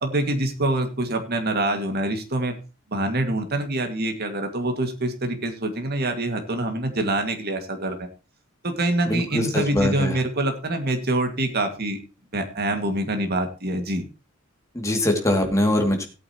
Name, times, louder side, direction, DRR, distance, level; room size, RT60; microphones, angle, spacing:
voice 1, 0.0-2.6 2.9-8.1 8.6-12.0 12.3-14.1, right 1 dB, 45° right, 5 dB, 2.1 m, -25 dB
voice 2, 9.0-10.2 14.7-16.1, left 1 dB, 15° left, 2 dB, 2.4 m, -22 dB
17.0 x 8.7 x 3.0 m, 0.31 s
head